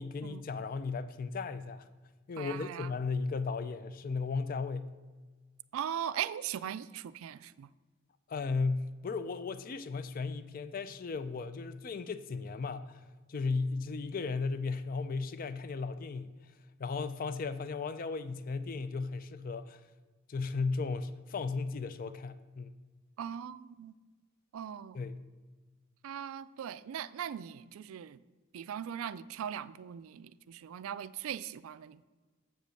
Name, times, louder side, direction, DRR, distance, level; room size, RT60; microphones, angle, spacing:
voice 1, 0.0-1.9 2.3-4.9 8.3-16.5 16.8-19.8 20.3-22.8 24.9-25.2, left 4 dB, 40° left, 0.4 m, -35 dB
voice 2, 2.4-2.9 5.7-7.7 23.2-23.9 24.5-25.0 26.0-28.2 28.5-32.0, right 9 dB, 75° right, 0.3 m, -39 dB
7.6 x 5.2 x 6.5 m
head